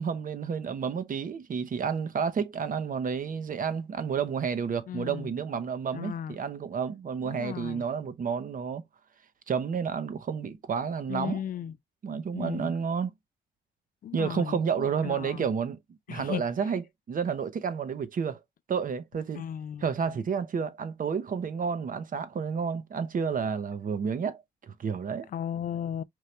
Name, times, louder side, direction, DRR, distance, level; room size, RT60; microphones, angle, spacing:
voice 1, 0.0-8.8 9.5-11.4 12.0-13.1 14.1-15.8 16.1-16.8 17.1-18.4 18.7-19.4 19.8-25.3, right 6 dB, 45° right, 0.8 m, -30 dB
voice 2, 4.9-5.3 5.9-6.4 7.2-7.9 11.1-11.8 12.3-12.7 14.0-15.5 16.1-16.7 19.3-20.2 25.3-26.0, left 9 dB, 45° left, 0.4 m, -36 dB
4.6 x 2.7 x 3.2 m
cardioid pair, 90°, 20 cm